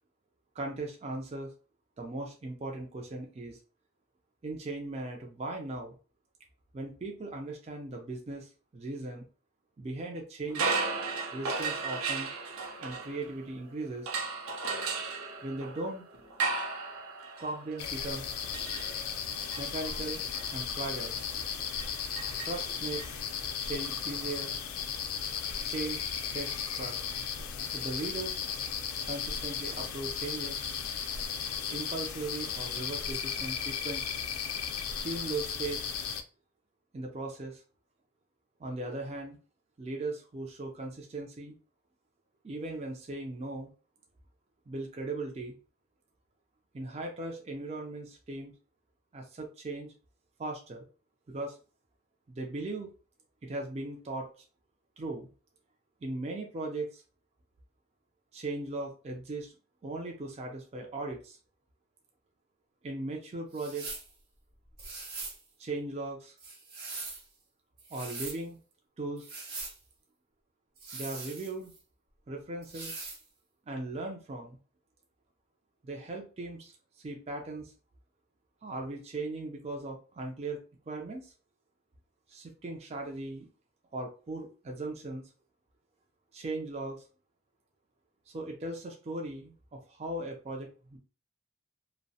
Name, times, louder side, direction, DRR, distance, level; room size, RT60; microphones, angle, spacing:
voice 1, 0.6-1.5 2.0-3.6 4.4-5.9 6.7-9.2 9.8-10.7 11.3-12.3 12.8-14.1 15.4-16.1 17.4-18.3 19.6-20.2 20.5-21.2 22.5-23.2 23.6-24.6 25.6-27.0 27.7-28.4 29.0-30.6 31.7-34.2 35.0-35.8 36.9-37.6 38.6-39.4 39.8-41.5 42.4-43.7 44.7-45.5 46.7-48.5 49.1-49.9 50.4-50.8 51.3-51.6 52.3-52.9 53.4-54.3 55.0-55.3 56.0-57.0 58.3-59.5 59.8-61.4 62.8-64.0 65.6-66.3 67.9-68.6 69.0-69.3 70.9-71.7 72.3-72.9 73.7-74.6 75.8-76.7 77.0-77.7 78.6-81.3 82.3-83.5 83.9-85.3 86.3-87.0 88.3-91.0, right 2 dB, 30° right, 2 dB, 0.3 m, -38 dB
sound 1, 10.5-13.6 14.1-23.1, right 4 dB, 85° right, 0.5 m, -36 dB
sound 2, 17.8-36.2, left 7 dB, 85° left, 0.4 m, -35 dB
sound 3, 63.5-64.1 64.8-65.4 66.4-67.2 67.8-68.4 69.2-69.8 70.8-71.8 72.6-73.2, right 3 dB, 50° right, 0.8 m, -41 dB
2.6 x 2.0 x 2.6 m, 0.36 s
head